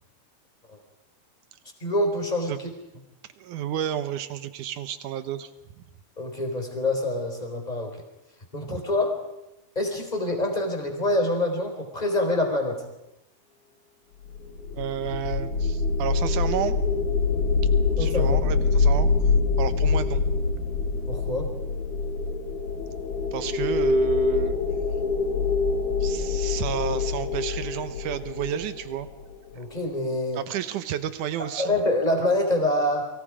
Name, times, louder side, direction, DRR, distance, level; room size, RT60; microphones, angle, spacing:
voice 1, 1.8-2.7 6.2-8.0 8.5-9.2 9.7-12.8 18.0-18.4 21.1-21.5 29.5-30.4 31.4-33.1, left 1 dB, 10° left, 3 dB, 4.0 m, -26 dB
voice 2, 3.4-5.5 8.7-8.8 14.7-16.8 18.0-19.1 19.6-20.2 23.3-24.6 26.0-29.1 30.3-31.7, right 10 dB, 75° right, 12 dB, 1.8 m, -31 dB
sound 1, 14.3-29.5, left 4 dB, 55° left, 2.9 m, -25 dB
30.0 x 24.0 x 5.0 m, 0.93 s
omnidirectional pair, 4.8 m